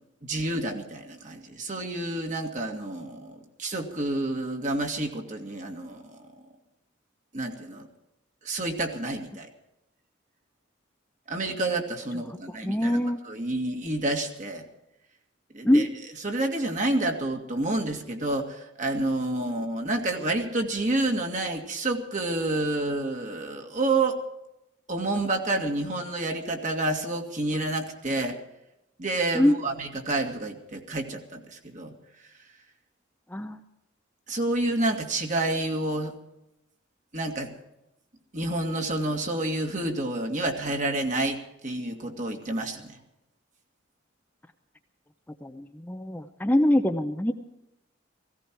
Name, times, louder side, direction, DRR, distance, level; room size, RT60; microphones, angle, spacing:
voice 1, 0.2-6.2 7.3-7.9 8.4-9.5 11.3-13.0 13.2-14.6 15.5-15.9 16.2-24.2 24.9-28.4 29.0-31.9 34.3-36.1 37.1-37.5 38.3-41.4 41.6-43.0, right 2 dB, 40° right, 4 dB, 2.1 m, -29 dB
voice 2, 12.3-13.2 15.6-16.0 19.4-19.5 29.3-29.6 33.3-33.6 45.4-47.3, left 1 dB, 10° left, 6 dB, 0.7 m, -24 dB
17.0 x 16.5 x 4.6 m, 0.88 s
head